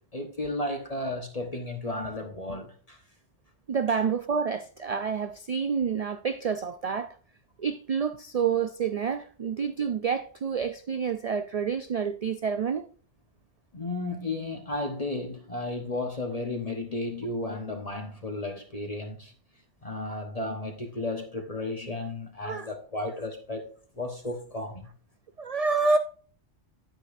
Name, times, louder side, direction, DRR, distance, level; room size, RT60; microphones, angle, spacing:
voice 1, 0.1-3.0 3.9-4.0 13.7-19.3 19.8-23.7 24.0-24.9, left 2 dB, 35° left, 1.2 m, -33 dB
voice 2, 3.7-7.2 7.6-12.9 20.1-20.2 22.4-22.7 25.4-26.0, right 5 dB, 85° right, 0.3 m, -28 dB
10.0 x 9.1 x 2.6 m
omnidirectional pair, 1.2 m